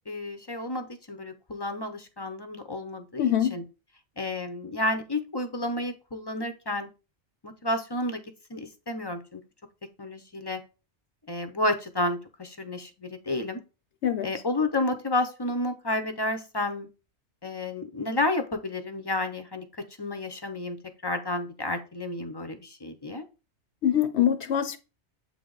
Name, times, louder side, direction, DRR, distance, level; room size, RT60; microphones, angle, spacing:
voice 1, 0.1-3.6 4.2-6.9 7.4-8.2 8.5-9.4 10.0-10.6 11.3-13.6 14.2-16.9 17.4-19.7 20.0-20.8 21.0-23.3, left 2 dB, 35° left, 0.4 m, -31 dB
voice 2, 3.2-3.6 14.0-14.3 23.8-24.8, left 10 dB, 70° left, 0.8 m, -24 dB
7.7 x 3.4 x 3.8 m
omnidirectional pair, 1.2 m